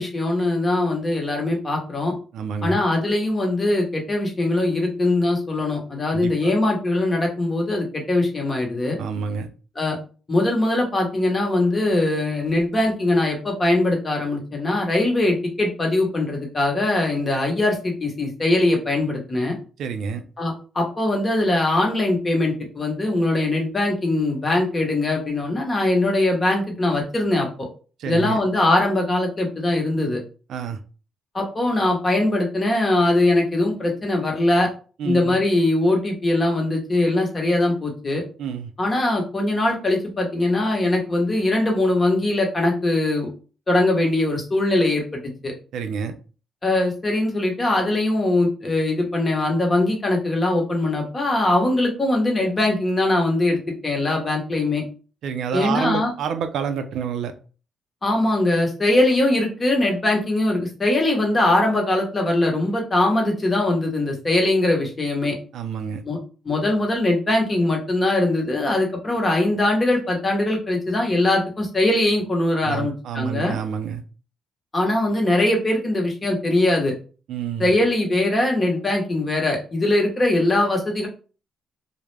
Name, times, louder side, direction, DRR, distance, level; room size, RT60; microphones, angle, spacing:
voice 1, 0.0-2.1 2.6-9.0 9.8-10.0 10.3-19.6 20.4-27.5 28.1-30.2 31.3-34.7 35.0-38.2 38.8-43.3 43.7-45.0 45.4-45.5 46.6-54.8 55.5-56.1 58.0-65.4 66.0-66.2 66.4-73.5 74.7-76.9 77.6-81.1, left 2 dB, 30° left, 1 dB, 0.9 m, -21 dB
voice 2, 2.3-2.8 6.1-6.5 9.0-9.5 19.8-20.2 28.0-28.4 30.5-30.8 35.0-35.4 38.4-38.7 45.7-46.1 55.2-57.3 65.5-66.0 72.7-74.0 77.3-77.7, right 7 dB, 75° right, 8 dB, 0.3 m, -28 dB
2.3 x 2.0 x 3.1 m, 0.37 s
cardioid pair, 90°, 0 cm